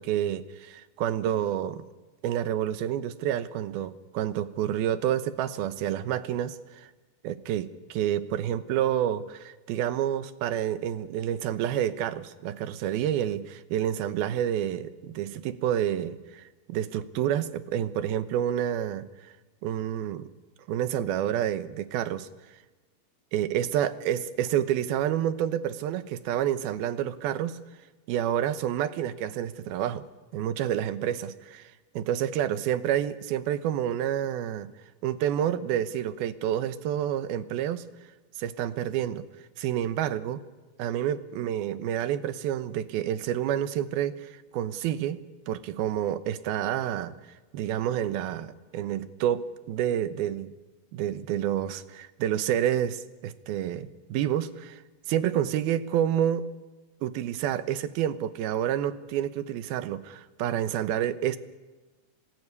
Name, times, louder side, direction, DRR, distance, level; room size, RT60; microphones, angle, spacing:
voice 1, 0.0-1.9 2.2-6.9 7.2-19.3 19.6-20.3 20.7-22.3 23.3-27.6 28.1-30.1 30.3-34.7 35.0-37.8 38.4-39.3 39.6-40.4 40.8-45.2 45.5-47.1 47.5-50.5 50.9-54.8 55.1-56.5 57.0-61.4, right 10 dB, 80° right, 12 dB, 2.9 m, -29 dB
27.0 x 19.0 x 9.7 m, 1.2 s
omnidirectional pair, 4.4 m